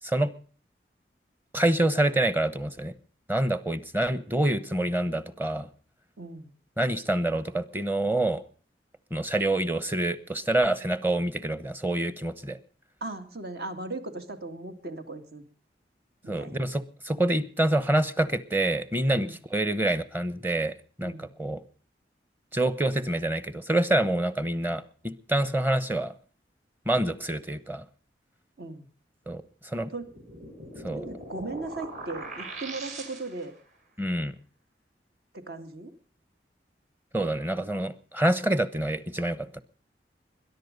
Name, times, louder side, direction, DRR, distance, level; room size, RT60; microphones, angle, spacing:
voice 1, 1.5-2.9 3.3-5.7 6.8-8.4 9.1-12.6 16.3-21.6 22.5-26.1 26.9-27.8 29.3-29.9 30.8-31.1 34.0-34.3 37.1-39.6, right 1 dB, 10° right, 15 dB, 1.0 m, -27 dB
voice 2, 6.2-6.5 13.0-15.4 16.2-16.6 19.1-19.4 21.0-21.3 28.6-28.9 29.9-30.1 30.9-33.5 35.3-35.9, right 2 dB, 60° right, 7 dB, 2.3 m, -37 dB
sound 1, 30.0-33.6, right 2 dB, 45° right, 5.6 m, -41 dB
21.5 x 11.0 x 5.3 m, 0.42 s
head